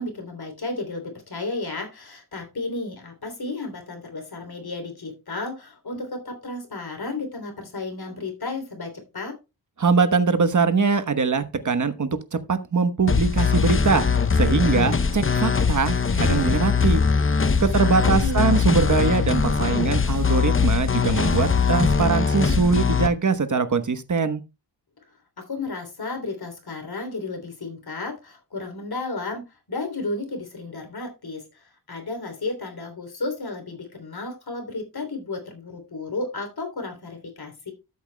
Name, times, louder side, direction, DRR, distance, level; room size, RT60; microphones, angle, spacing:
voice 1, 0.0-9.4 17.6-18.6 25.4-29.4 29.7-37.7, left 2 dB, 60° left, 3.2 m, -33 dB
voice 2, 9.8-14.1 14.3-17.0 17.6-24.4, right 4 dB, 45° right, 1.1 m, -22 dB
sound 1, 13.1-23.1, left 5 dB, 30° left, 0.6 m, -21 dB
13.0 x 8.1 x 2.2 m
wide cardioid pair, 110°, 43 cm